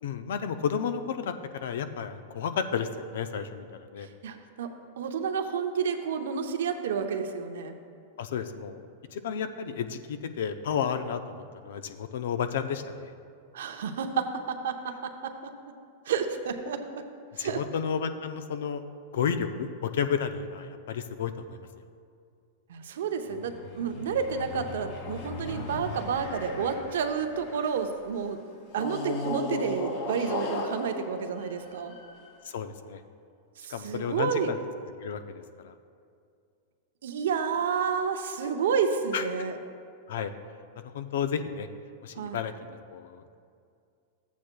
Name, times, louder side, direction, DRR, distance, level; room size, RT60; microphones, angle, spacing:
voice 1, 0.0-4.1 8.2-8.9 9.1-13.1 17.4-18.8 19.1-21.6 32.5-33.0 33.7-34.6 35.0-35.7 39.1-39.2 40.1-40.3 40.8-41.7 42.0-43.3, left 7 dB, 75° left, 9 dB, 0.5 m, -32 dB
voice 2, 4.2-7.7 13.5-15.3 16.1-16.8 17.4-17.6 22.7-28.4 28.7-32.0 33.6-34.5 37.0-39.5 42.2-42.4, right 6 dB, 80° right, 6 dB, 0.8 m, -30 dB
sound 1, 23.3-27.9 28.7-32.3, left 2 dB, 55° left, 1.8 m, -37 dB
14.0 x 8.3 x 2.3 m, 2.3 s
hypercardioid pair, 120°, 0 cm